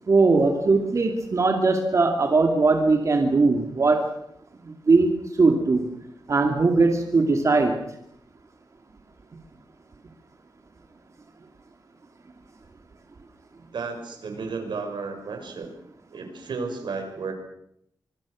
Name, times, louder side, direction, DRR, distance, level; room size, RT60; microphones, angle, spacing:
voice 1, 0.1-4.1 4.6-5.1 5.4-5.9 6.3-7.8, right 3 dB, 40° right, 4 dB, 2.6 m, -20 dB
voice 2, 13.7-15.7 16.1-17.3, right 4 dB, 90° right, 5 dB, 5.9 m, -33 dB
25.0 x 23.5 x 6.4 m, 0.75 s
wide cardioid pair, 155°, 8 cm